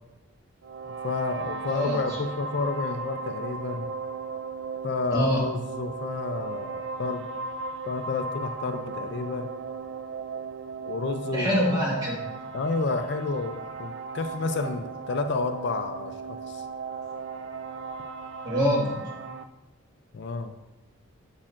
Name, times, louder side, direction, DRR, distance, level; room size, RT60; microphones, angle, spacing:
sound 1, 0.6-19.4, right 4 dB, 55° right, 0.4 m, -36 dB
voice 1, 1.0-3.9 4.8-7.2 7.9-9.5 10.9-11.6 12.5-16.6 20.1-20.5, left 3 dB, 55° left, 8 dB, 0.4 m, -30 dB
voice 2, 1.7-2.0 5.1-5.4 11.3-12.1 18.4-18.9, equal, 20° right, -5 dB, 1.8 m, -24 dB
8.5 x 7.2 x 2.5 m, 1.0 s
head